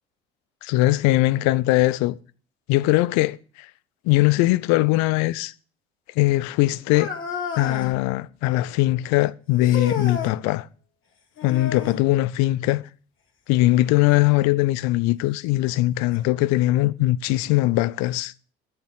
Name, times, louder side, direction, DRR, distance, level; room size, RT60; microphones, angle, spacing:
voice 1, 0.6-2.2 2.7-3.4 4.1-5.5 6.2-7.1 7.6-10.7 11.4-12.8 13.5-18.3, left 17 dB, 60° left, 0.7 m, -20 dB
sound 1, 6.9-8.0 9.6-10.4 11.4-12.1 14.1-14.2 15.1-15.2 16.1-16.2, left 5 dB, 40° left, 4.4 m, -32 dB
12.0 x 7.3 x 6.6 m
hypercardioid pair, 60°, 31 cm